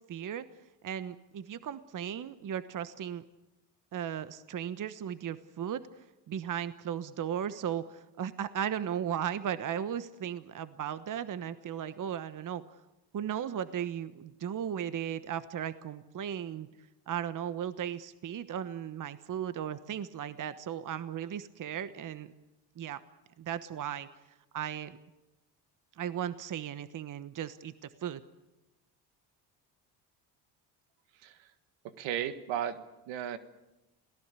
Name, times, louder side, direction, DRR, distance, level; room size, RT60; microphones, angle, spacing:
voice 1, 0.1-0.5 0.8-3.2 3.9-5.8 6.3-12.6 13.1-16.7 17.1-22.3 22.8-23.0 23.4-24.1 24.5-25.0 26.0-28.2, right 9 dB, 45° right, 13 dB, 1.2 m, -36 dB
voice 2, 32.0-33.4, right 10 dB, 75° right, 11 dB, 1.7 m, -35 dB
27.0 x 18.0 x 8.3 m, 1.0 s
supercardioid pair, 75°, 46 cm